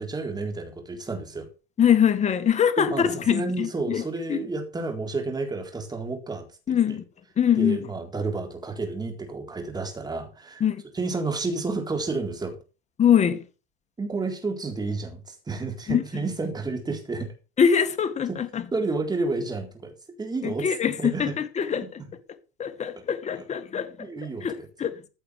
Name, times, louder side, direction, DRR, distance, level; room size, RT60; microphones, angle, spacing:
voice 1, 0.0-1.5 2.8-6.5 7.6-10.6 10.9-12.6 14.0-17.3 18.3-18.4 18.7-21.3 21.8-22.1 23.4-23.5 24.0-24.7, right 3 dB, 10° right, 3.9 m, -31 dB
voice 2, 1.8-4.0 4.3-4.4 6.7-7.0 7.4-7.8 10.6-10.8 13.0-13.4 15.9-16.0 17.6-18.6 20.4-21.9 22.6-24.1 24.4-24.9, left 8 dB, 20° left, 1.8 m, -23 dB
15.0 x 6.8 x 6.5 m
supercardioid pair, 135°, 32 cm